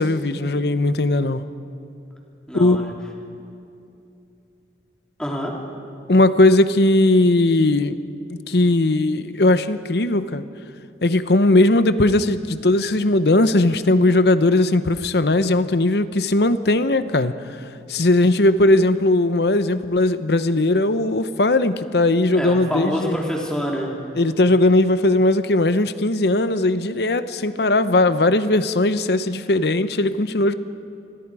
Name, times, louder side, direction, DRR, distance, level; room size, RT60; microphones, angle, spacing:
voice 1, 0.0-1.4 2.5-3.0 6.1-8.0 8.3-10.4 11.0-17.3 17.9-23.2 24.2-30.5, left 2 dB, 65° left, 12 dB, 0.9 m, -18 dB
voice 2, 2.5-2.9 5.2-5.5 22.3-23.9, equal, 5° left, -2 dB, 3.1 m, -26 dB
28.0 x 21.5 x 4.9 m, 2.7 s
head